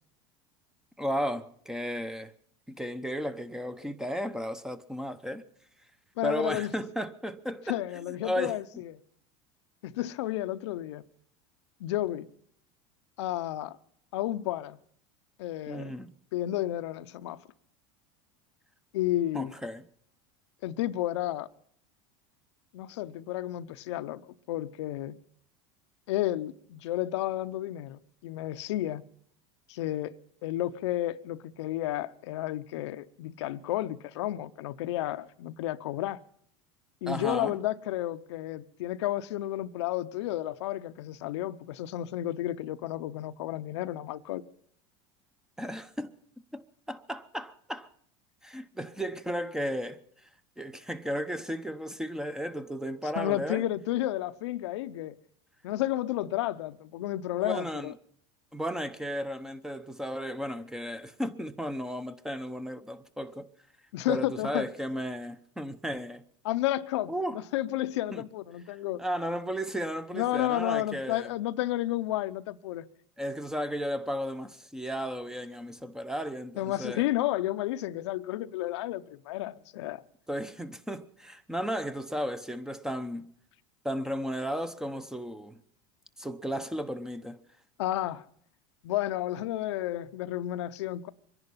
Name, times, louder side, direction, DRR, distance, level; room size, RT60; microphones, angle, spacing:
voice 1, 1.0-2.3 2.7-5.4 6.2-7.8 8.2-8.6 15.7-16.1 19.3-19.8 37.1-37.6 45.6-46.1 46.5-47.9 48.4-50.0 50.6-53.6 57.4-57.9 58.5-63.5 64.1-66.2 67.1-67.4 68.1-68.2 69.0-71.3 73.2-77.0 80.3-83.3 83.8-85.6 86.2-87.4, equal, 5° right, 0.8 m, -34 dB
voice 2, 6.2-6.7 7.7-8.9 9.8-11.0 11.8-12.3 13.2-13.8 14.1-14.8 15.4-15.9 16.3-17.4 18.9-19.5 20.6-21.5 22.7-24.2 24.5-25.2 26.1-29.0 29.7-30.1 30.4-36.2 37.0-44.4 53.2-55.2 55.6-57.9 63.9-64.7 66.4-69.0 70.1-72.9 76.6-80.0 87.8-88.2 88.8-91.1, left 14 dB, 85° left, 0.7 m, -32 dB
23.5 x 11.0 x 5.6 m
supercardioid pair, 115°, 14 cm